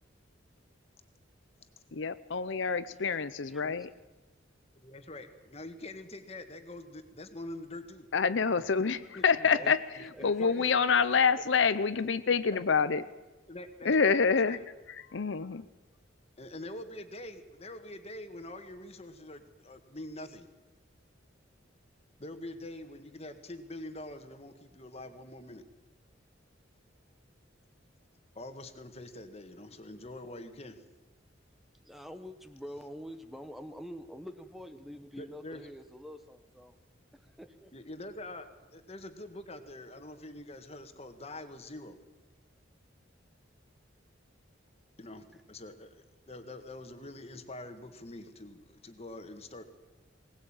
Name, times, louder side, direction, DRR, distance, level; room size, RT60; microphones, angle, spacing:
voice 1, 1.9-3.9 8.1-13.0 13.8-14.6 14.9-15.7, left 5 dB, 70° left, 13 dB, 0.7 m, -27 dB
voice 2, 4.7-8.1 9.1-9.2 10.4-10.5 12.5-12.6 12.9-13.0 13.5-14.6 16.4-20.5 22.2-25.6 28.3-30.8 35.2-35.6 37.7-42.0 45.0-49.6, left 1 dB, 30° left, 8 dB, 1.8 m, -45 dB
voice 3, 10.2-10.7 31.8-36.8 37.1-37.7, equal, ahead, 8 dB, 1.1 m, -46 dB
20.5 x 19.5 x 8.9 m, 1.1 s
head